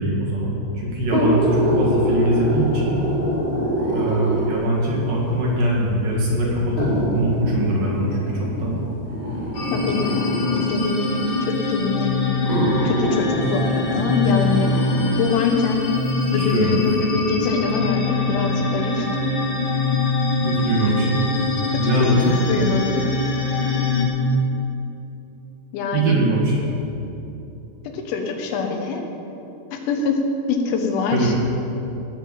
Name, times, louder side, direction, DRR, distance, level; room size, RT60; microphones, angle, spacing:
voice 1, 0.0-1.5 1.8-3.0 3.9-8.7 16.3-16.8 20.4-21.2 21.8-22.4 25.9-26.6 31.1-31.4, right 1 dB, 55° right, -4 dB, 3.2 m, -22 dB
sound 1, 1.0-4.7 5.6-5.7 6.8-10.7 11.7-11.8 12.4-15.1 15.6-15.7, equal, 20° left, 3.1 m, -24 dB
sound 2, 9.5-24.1, left 3 dB, 75° left, 3.4 m, -23 dB
voice 2, 9.7-10.1 10.5-12.4 12.9-14.7 15.2-15.9 16.3-19.1 21.7-23.1 25.7-26.2 27.9-29.0 29.7-30.2 30.5-31.3, left 4 dB, 90° left, 3 dB, 3.6 m, -24 dB
17.0 x 5.8 x 7.5 m, 2.9 s
omnidirectional pair, 5.2 m